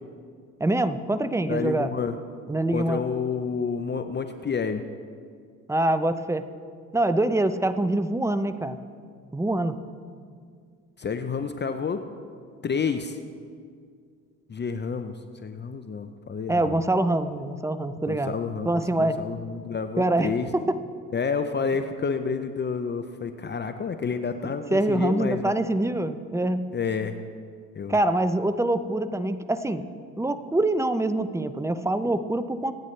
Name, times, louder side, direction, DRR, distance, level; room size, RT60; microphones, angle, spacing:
voice 1, 0.6-1.9 2.5-3.0 5.7-6.5 6.9-8.8 9.3-9.8 16.5-18.3 18.6-19.2 20.0-20.8 24.7-26.7 27.9-29.9 30.2-32.7, right 1 dB, 10° right, 11 dB, 0.8 m, -25 dB
voice 2, 1.5-2.2 2.7-4.8 11.0-12.0 12.6-13.2 14.5-15.1 15.4-16.8 18.1-18.7 19.0-20.5 21.1-25.5 26.7-27.2 27.7-28.0, left 5 dB, 30° left, 8 dB, 0.8 m, -29 dB
25.0 x 9.3 x 3.3 m, 2.1 s
hypercardioid pair, 65°, 36 cm